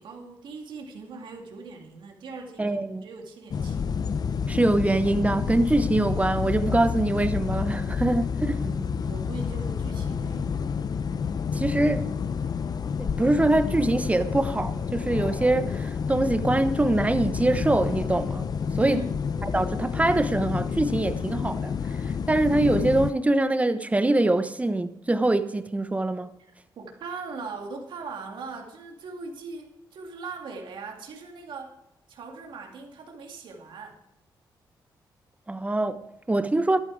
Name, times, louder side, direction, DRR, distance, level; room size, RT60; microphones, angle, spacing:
voice 1, 0.0-4.0 8.5-10.7 18.8-19.2 26.4-31.7 32.1-34.0, right 4 dB, 75° right, 2.4 m, -40 dB
voice 2, 2.6-3.0 4.5-8.6 11.5-12.1 13.0-18.5 18.7-19.0 19.5-26.3 35.5-36.8, right 2 dB, 15° right, 1.0 m, -24 dB
sound 1, 3.5-23.1, left 6 dB, 55° left, 0.7 m, -29 dB
13.0 x 11.5 x 4.8 m
cardioid pair, 70°, 8 cm